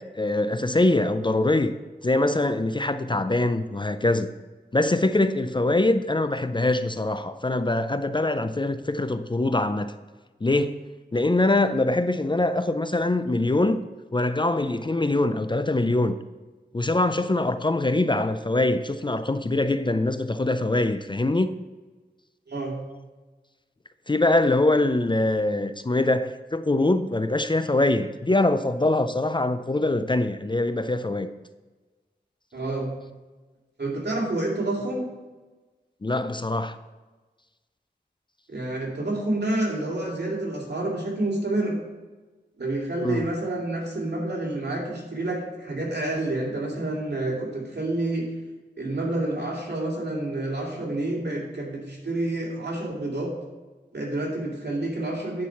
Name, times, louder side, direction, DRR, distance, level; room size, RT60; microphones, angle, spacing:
voice 1, 0.0-1.8 2.0-4.3 4.7-9.9 10.4-10.8 11.1-13.8 14.1-16.1 16.7-21.6 24.1-31.3 36.0-36.8 43.0-43.3, left 2 dB, 25° left, 0.4 m, -23 dB
voice 2, 22.5-22.8 32.5-32.9 33.8-35.0 38.5-41.8 42.6-48.3 48.8-53.3 53.9-55.5, right 2 dB, 70° right, 2.6 m, -28 dB
10.0 x 4.7 x 5.8 m
wide cardioid pair, 60°, 18 cm